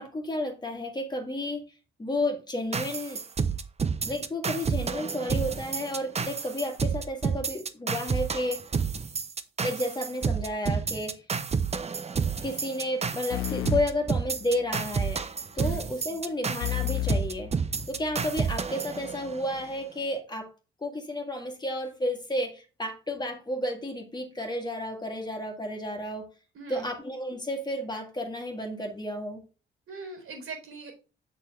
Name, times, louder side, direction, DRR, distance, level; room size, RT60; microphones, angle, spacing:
voice 1, 0.0-1.6 2.0-3.2 4.0-8.6 9.6-11.2 12.4-15.2 15.6-17.5 17.9-20.5 20.8-26.3 26.7-29.4, left 1 dB, 20° left, 1.9 m, -32 dB
sound 1, 2.7-19.6, right 5 dB, 30° right, 0.8 m, -30 dB
sound 2, 13.3-14.9 16.6-18.4, left 16 dB, 80° left, 0.5 m, -33 dB
voice 2, 29.9-30.9, right 3 dB, 80° right, 3.9 m, -41 dB
7.3 x 6.2 x 3.5 m
cardioid pair, 105°, 21 cm